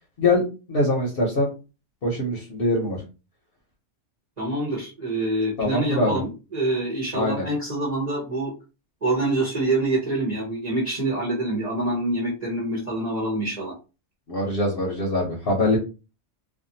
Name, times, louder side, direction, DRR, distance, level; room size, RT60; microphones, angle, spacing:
voice 1, 0.7-1.5 2.0-3.0 5.6-6.2 7.1-7.4 14.3-15.8, left 2 dB, 50° left, -1 dB, 0.9 m, -23 dB
voice 2, 4.4-8.5 9.0-13.7, right 2 dB, 35° right, -5 dB, 1.0 m, -26 dB
2.6 x 2.5 x 2.6 m, 0.31 s
omnidirectional pair, 1.3 m